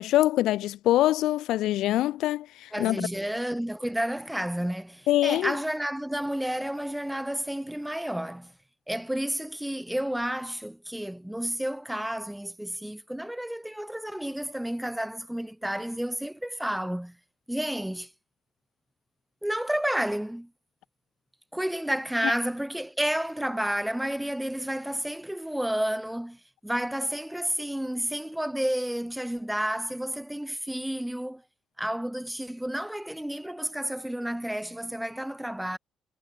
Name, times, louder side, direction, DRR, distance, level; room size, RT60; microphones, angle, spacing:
voice 1, 0.0-3.1 5.1-5.5, left 14 dB, 85° left, 1.6 m, -24 dB
voice 2, 2.7-8.5 8.9-17.2 17.5-18.1 19.4-20.5 21.5-31.4 31.8-35.8, right 1 dB, 5° right, 4.7 m, -31 dB
cardioid pair, 80°, 0 cm